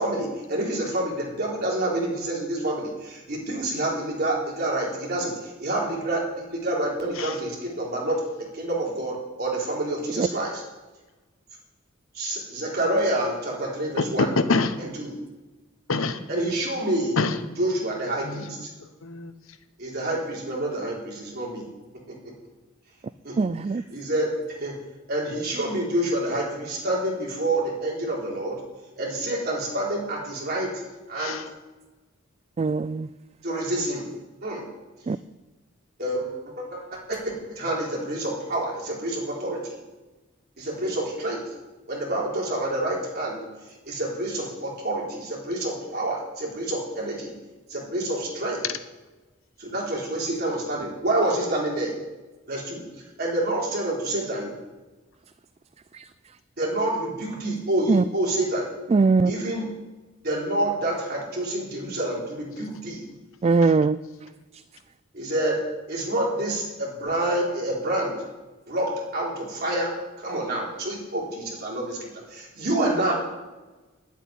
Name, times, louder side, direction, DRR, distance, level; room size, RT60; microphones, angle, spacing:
voice 1, 0.0-5.3 5.6-10.6 12.1-14.3 14.8-15.2 16.3-17.3 17.6-18.7 19.8-21.7 22.1-22.2 23.2-23.5 23.9-24.3 24.6-24.8 25.1-28.6 29.0-30.7 31.1-31.4 33.4-34.1 34.4-34.6 36.0-36.8 37.1-39.7 40.6-41.4 41.9-43.4 43.9-47.3 47.7-48.6 49.6-51.9 52.5-52.8 53.2-54.6 56.6-58.7 59.3-59.7 60.2-63.0 65.1-65.6 65.9-68.1 68.7-69.9 70.2-73.1, right 1 dB, 50° right, -3 dB, 3.8 m, -28 dB
voice 2, 14.2-14.8 15.9-16.2 17.2-17.4 18.2-18.5 19.0-19.3 31.2-31.5 63.6-63.7, left 3 dB, 90° left, 10 dB, 1.0 m, -25 dB
voice 3, 23.4-23.8 32.6-33.1 35.1-35.2 57.9-58.0 58.9-59.3 63.4-64.0, right 4 dB, 30° right, 14 dB, 0.3 m, -20 dB
10.5 x 8.2 x 9.1 m, 1.2 s
head